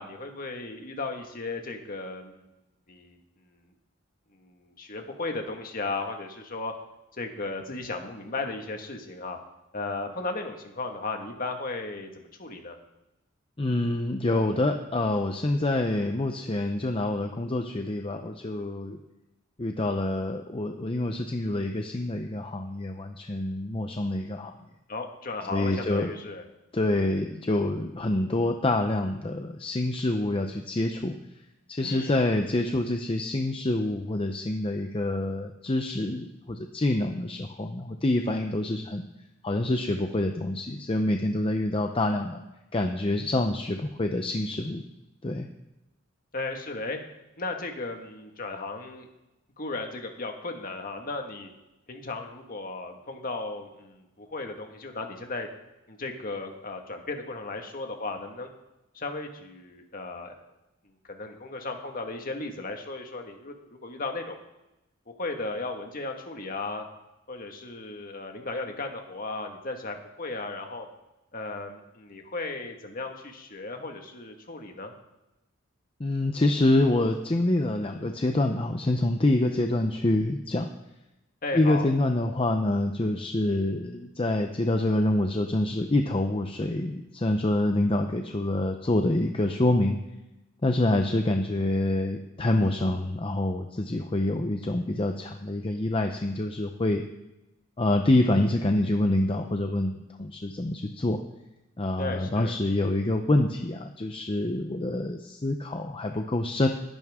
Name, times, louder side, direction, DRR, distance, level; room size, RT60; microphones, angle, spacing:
voice 1, 0.0-2.4 2.9-3.2 4.3-6.7 7.1-9.4 9.7-12.8 24.9-26.4 31.8-32.2 46.3-47.0 47.4-49.1 49.6-51.5 51.9-55.5 55.9-58.5 58.9-60.3 61.1-64.4 65.1-66.9 67.3-70.9 71.3-74.9 81.4-81.9 102.0-102.6, left 3 dB, 45° left, 4 dB, 1.7 m, -35 dB
voice 2, 13.6-19.0 19.6-24.5 25.5-26.1 26.7-31.2 31.7-39.0 39.4-42.4 42.7-44.8 45.2-45.5 76.0-80.7 81.5-90.0 90.6-97.0 97.8-101.2 101.8-106.7, left 1 dB, 25° left, 4 dB, 0.7 m, -26 dB
20.5 x 10.5 x 3.7 m, 0.96 s
head